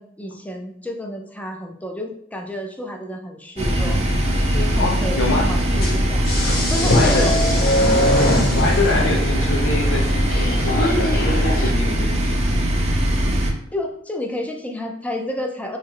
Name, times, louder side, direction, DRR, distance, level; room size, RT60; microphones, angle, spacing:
voice 1, 0.0-4.0 4.5-6.2 6.7-7.3 13.7-15.8, left 1 dB, 10° left, 2 dB, 0.5 m, -30 dB
sound 1, 3.6-11.7, left 1 dB, 55° left, 0.8 m, -24 dB
sound 2, 3.6-13.5, equal, 35° right, 0.6 m, -20 dB
voice 2, 4.8-5.5 6.9-7.4 8.2-12.6, left 2 dB, 85° left, 0 dB, 0.8 m, -25 dB
3.1 x 3.0 x 3.7 m, 0.71 s
head